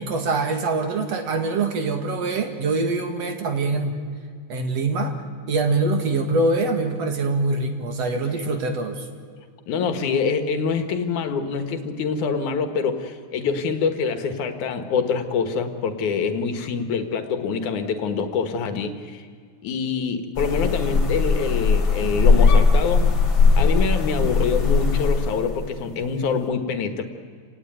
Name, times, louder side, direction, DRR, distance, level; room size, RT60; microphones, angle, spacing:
voice 1, 0.0-4.0 4.5-5.1 5.5-9.0, right 3 dB, 60° right, 5 dB, 3.0 m, -24 dB
voice 2, 9.7-19.3 19.6-23.1 23.6-27.0, left 5 dB, 85° left, 7 dB, 3.0 m, -25 dB
sound 1, 20.4-25.7, left 4 dB, 45° left, 2.8 m, -19 dB
28.0 x 18.5 x 9.1 m, 2.1 s
omnidirectional pair, 3.4 m